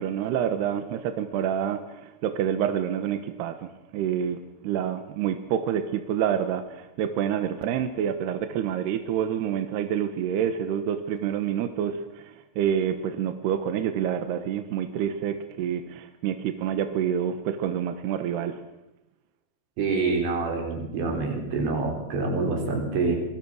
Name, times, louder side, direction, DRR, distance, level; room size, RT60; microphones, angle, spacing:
voice 1, 0.0-18.6, right 9 dB, 75° right, 8 dB, 3.2 m, -28 dB
voice 2, 19.8-23.2, right 3 dB, 90° right, 2 dB, 6.9 m, -26 dB
27.0 x 21.5 x 6.4 m, 0.91 s
omnidirectional pair, 5.0 m